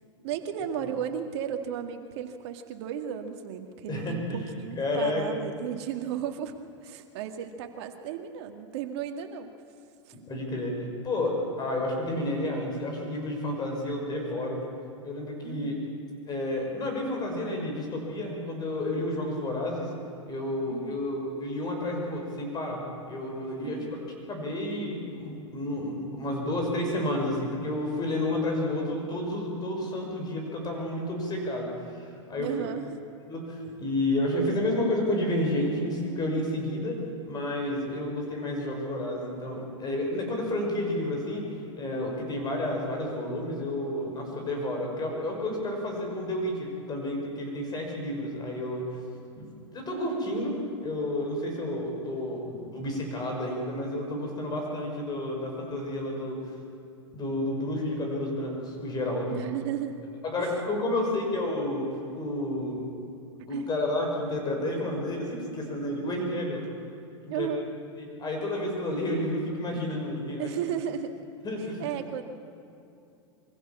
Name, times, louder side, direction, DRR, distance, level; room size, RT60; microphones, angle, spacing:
voice 1, 0.2-4.2 4.6-6.5 6.8-9.5 10.1-10.2 15.4-15.9 20.7-21.1 23.6-23.9 32.4-32.9 59.3-60.0 60.4-60.5 61.0-61.2 63.5-63.7 67.3-67.7 70.4-71.2 71.8-72.2, right 9 dB, 60° right, 5 dB, 2.1 m, -34 dB
voice 2, 3.9-5.2 10.3-10.7 11.0-14.6 15.0-15.7 16.3-19.9 20.3-24.0 24.3-32.5 33.3-41.5 41.8-48.8 49.4-56.5 57.1-59.4 60.2-62.8 63.5-66.6 67.2-67.5 68.0-70.5 71.4-71.9, left 1 dB, 25° left, 1 dB, 6.1 m, -31 dB
23.5 x 16.0 x 7.3 m, 2.6 s
hypercardioid pair, 110°, 16 cm